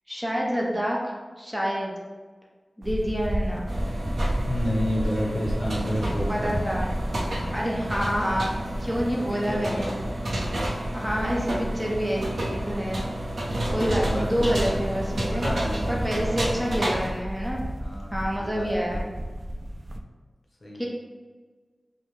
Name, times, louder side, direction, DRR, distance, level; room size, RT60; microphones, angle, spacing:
voice 1, 0.1-1.9 2.8-3.7 6.3-6.9 7.5-8.5 8.8-9.9 10.9-13.0 13.7-15.4 15.9-17.6 18.1-19.0 20.8-20.9, equal, 5° right, -3 dB, 0.7 m, -27 dB
sound 1, 2.8-20.0, right 1 dB, 35° right, 0.3 m, -32 dB
sound 2, 3.7-17.1, right 1 dB, 80° right, 0.7 m, -31 dB
voice 2, 4.4-6.6 9.1-10.2 13.2-13.4 14.0-14.8 15.3-16.5 17.8-19.3 20.6-20.9, equal, 50° left, -2 dB, 0.9 m, -31 dB
5.3 x 2.1 x 3.2 m, 1.4 s
wide cardioid pair, 80°, 0 cm